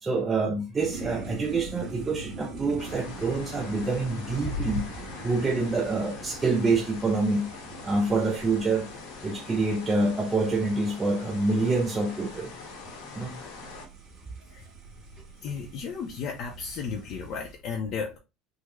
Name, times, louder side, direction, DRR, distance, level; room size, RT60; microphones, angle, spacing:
voice 1, 0.0-7.5 7.8-8.9 9.2-12.5 13.2-13.4, right 3 dB, 15° right, 0.4 m, -26 dB
sound 1, 0.8-17.5, right 3 dB, 50° right, 1.6 m, -44 dB
sound 2, 2.8-13.9, left 3 dB, 90° left, 1.1 m, -41 dB
voice 2, 15.4-18.2, left 5 dB, 50° left, 0.5 m, -34 dB
3.5 x 2.1 x 3.0 m
cardioid pair, 150°, 0 cm